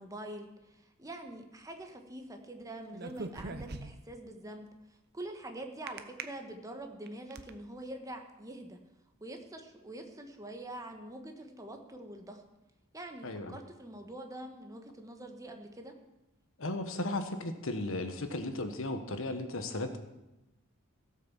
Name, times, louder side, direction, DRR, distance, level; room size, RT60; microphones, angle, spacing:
voice 1, 0.0-4.7 5.1-8.8 9.2-12.4 12.9-15.9, right 1 dB, 15° right, 4 dB, 1.3 m, -45 dB
sound 1, 2.9-4.2 5.9-6.2 6.8-7.5, right 3 dB, 50° right, 0.9 m, -41 dB
voice 2, 13.2-13.6 16.6-20.0, left 2 dB, 65° left, 8 dB, 1.3 m, -35 dB
17.0 x 6.4 x 7.4 m, 0.96 s
head